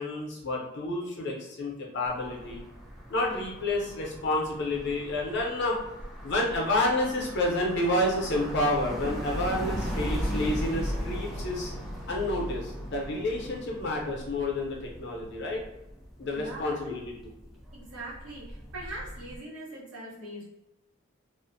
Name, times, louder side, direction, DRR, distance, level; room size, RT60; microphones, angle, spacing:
voice 1, 0.0-2.6 3.1-5.8 6.2-11.7 12.1-15.6 16.2-17.1, left 1 dB, 55° left, -1 dB, 0.6 m, -29 dB
sound 1, 2.1-19.4, equal, ahead, 0.3 m, -38 dB
voice 2, 16.3-17.0 17.7-20.4, right 1 dB, 80° right, -7 dB, 1.0 m, -41 dB
2.4 x 2.0 x 2.5 m, 0.94 s
head